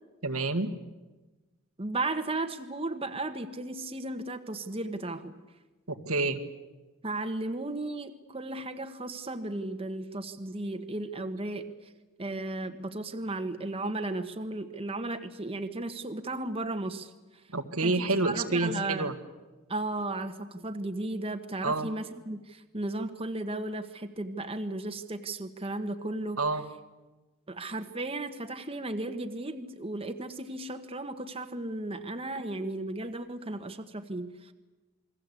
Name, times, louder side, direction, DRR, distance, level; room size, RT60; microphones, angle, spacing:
voice 1, 0.2-0.7 5.9-6.4 17.5-19.1 21.6-21.9 26.4-26.6, right 3 dB, 90° right, 6 dB, 2.1 m, -28 dB
voice 2, 1.8-5.3 7.0-11.9 12.2-17.4 17.8-19.1 19.7-26.4 27.5-34.5, right 2 dB, 25° right, 6 dB, 1.4 m, -35 dB
28.5 x 21.5 x 8.4 m, 1.2 s
head